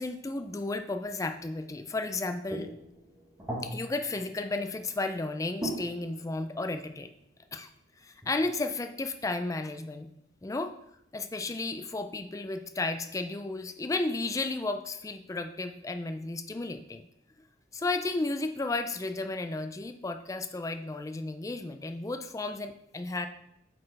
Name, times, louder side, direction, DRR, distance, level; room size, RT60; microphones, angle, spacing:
voice 1, 0.0-2.7 3.6-7.1 7.5-7.7 8.0-10.1 10.4-10.7 11.1-17.0 17.7-23.3, left 2 dB, 15° left, 8 dB, 0.3 m, -33 dB
sound 1, 2.5-5.2 5.6-7.2 8.2-8.3, right 1 dB, 15° right, 1.1 m, -40 dB
8.1 x 4.3 x 3.2 m, 0.77 s
head